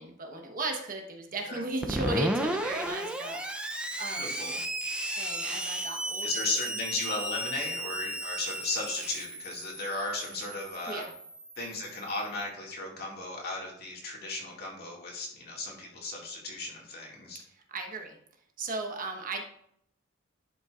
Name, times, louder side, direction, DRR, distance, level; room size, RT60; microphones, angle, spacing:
voice 1, 0.0-4.5 5.2-6.6 10.9-11.1 17.5-18.2 18.6-19.4, right 2 dB, 45° right, 2 dB, 1.2 m, -36 dB
Screech, 1.8-12.3, right 1 dB, 5° right, 0.6 m, -34 dB
voice 2, 4.2-4.6 6.2-11.1 11.6-17.4, left 2 dB, 55° left, -1 dB, 2.2 m, -35 dB
11.5 x 5.6 x 2.5 m, 0.69 s
head